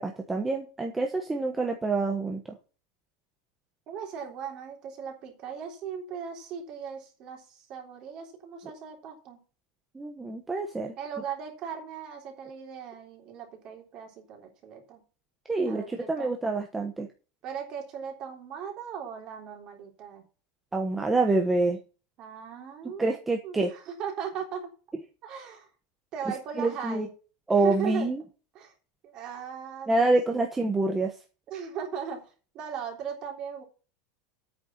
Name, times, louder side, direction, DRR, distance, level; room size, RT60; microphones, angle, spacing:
voice 1, 0.0-2.4 9.9-10.9 15.5-17.1 20.7-21.8 23.0-23.7 26.6-27.1 27.5-28.2 29.9-31.2, right 3 dB, 10° right, 3 dB, 1.0 m, -26 dB
voice 2, 3.9-9.4 11.0-15.0 15.7-16.4 17.4-20.2 22.2-23.1 23.4-24.7 25.2-25.7 26.1-27.1 27.6-28.1 28.5-28.7 29.0-30.5 31.5-32.3 32.5-33.6, right 7 dB, 30° right, 2 dB, 3.5 m, -38 dB
9.0 x 6.7 x 7.3 m, 0.35 s
supercardioid pair, 175°, 2 cm